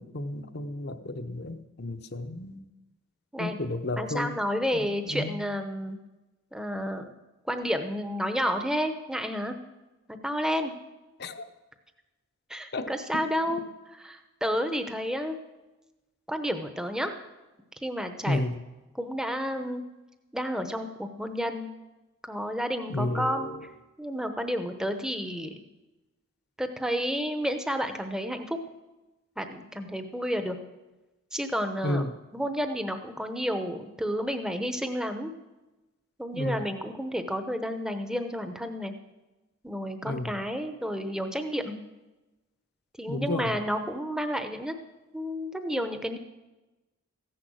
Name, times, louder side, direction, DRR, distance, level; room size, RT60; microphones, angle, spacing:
voice 1, 0.0-2.7 3.4-4.3 4.9-5.3 11.2-11.5 12.7-12.9 18.3-18.5 22.9-23.6 31.8-32.1 36.3-36.7 40.0-40.3 43.1-43.5, left 1 dB, 50° left, 8 dB, 0.8 m, -32 dB
voice 2, 3.9-6.0 6.5-7.1 7.5-9.6 10.1-10.7 12.5-13.6 13.9-15.4 16.3-17.1 17.8-18.4 18.9-19.8 20.3-21.7 22.2-23.5 24.0-25.6 26.6-28.6 29.4-30.6 31.3-35.3 36.2-38.9 39.6-41.8 43.0-44.8 45.1-46.2, equal, 5° right, 7 dB, 0.9 m, -31 dB
15.0 x 10.5 x 6.3 m, 1.1 s
head